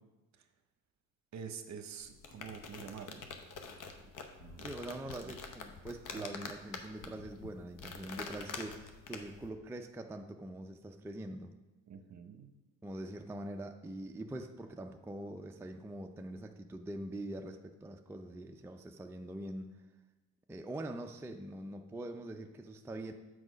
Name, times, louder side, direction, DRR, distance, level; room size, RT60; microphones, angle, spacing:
voice 1, 1.3-3.2 4.4-4.7 5.2-5.3 6.1-6.4 11.9-12.5, right 7 dB, 50° right, 7 dB, 0.8 m, -47 dB
sound 1, 2.0-9.5, left 5 dB, 55° left, 0.9 m, -46 dB
voice 2, 4.6-11.6 12.8-19.7 20.5-23.1, right 1 dB, 5° right, 4 dB, 0.4 m, -43 dB
6.2 x 4.8 x 5.1 m, 1.1 s
supercardioid pair, 80°, 37 cm